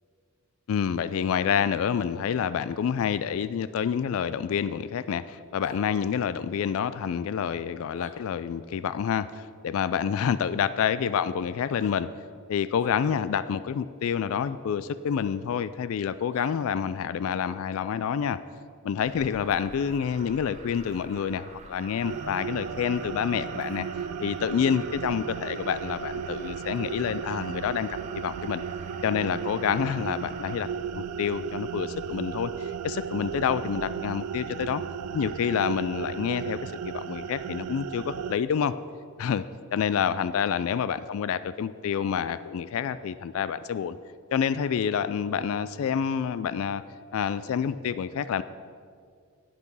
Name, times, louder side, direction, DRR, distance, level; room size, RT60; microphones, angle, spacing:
voice 1, 0.7-12.1 12.5-18.4 18.8-23.9 24.2-27.9 28.1-28.6 29.0-34.8 35.1-38.7 39.2-39.4 39.7-44.0 44.3-46.8 47.1-48.4, left 7 dB, 70° left, 15 dB, 0.3 m, -28 dB
sound 1, 5.6-5.8 7.9-8.2 10.1-10.3 11.7-12.0 12.8-13.0 15.1-15.2 16.3-16.5, left 4 dB, 30° left, 0.6 m, -48 dB
Alarm, 19.0-30.6, right 3 dB, 30° right, 0.8 m, -47 dB
sound 2, 22.0-38.4, right 7 dB, 90° right, 0.4 m, -35 dB
10.0 x 8.4 x 5.4 m, 2.1 s
head